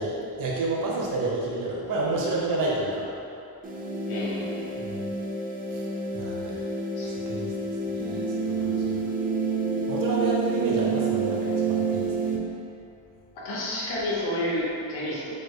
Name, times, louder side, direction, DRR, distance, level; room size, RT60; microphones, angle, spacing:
voice 1, 0.0-3.1 4.8-5.1 5.7-5.8 6.1-6.6 7.0-7.5 8.0-8.2 8.6-9.0 9.9-12.1, right 2 dB, 55° right, -3 dB, 0.8 m, -29 dB
sound 1, 3.6-12.4, right 4 dB, 25° right, 0.4 m, -28 dB
voice 2, 4.1-4.8 7.0-7.1 13.3-15.4, left 1 dB, 80° left, -6 dB, 1.3 m, -30 dB
4.6 x 2.2 x 4.6 m, 2.7 s
cardioid pair, 145°, 39 cm